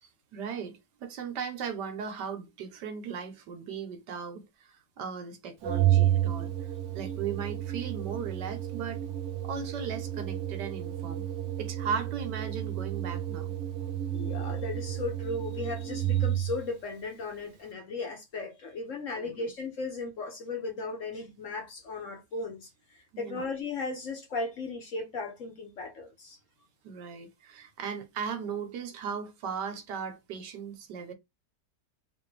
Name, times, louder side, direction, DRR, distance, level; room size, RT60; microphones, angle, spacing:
voice 1, 0.0-6.5 6.9-9.0 9.4-11.2 11.6-13.5 19.2-19.3 23.1-23.5 26.8-31.1, right 6 dB, 75° right, 1.4 m, -37 dB
Organ, 5.6-16.7, right 12 dB, 60° right, 0.8 m, -31 dB
voice 2, 14.1-22.7 23.2-26.4, left 3 dB, 55° left, 1.1 m, -36 dB
3.6 x 2.5 x 3.2 m
omnidirectional pair, 1.9 m